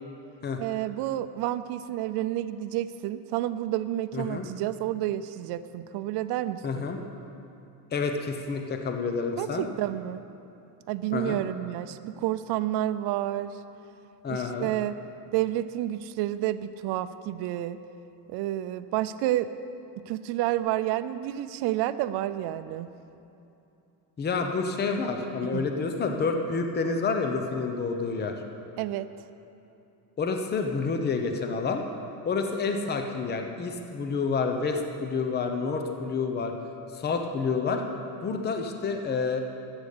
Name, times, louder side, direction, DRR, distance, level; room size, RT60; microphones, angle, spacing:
voice 1, 0.6-6.9 9.4-10.2 10.9-13.6 14.3-15.0 15.3-17.8 18.3-19.5 20.1-22.9 25.5-25.7 28.8-29.1, right 13 dB, 65° right, 12 dB, 0.6 m, -30 dB
voice 2, 4.1-4.5 6.6-7.0 7.9-9.7 11.1-11.4 14.2-14.7 24.2-28.3 30.2-31.8 32.2-36.5 36.9-37.8 38.2-39.4, left 4 dB, 25° left, 4 dB, 0.8 m, -29 dB
13.5 x 8.2 x 6.7 m, 2.9 s
cardioid pair, 145°, 42 cm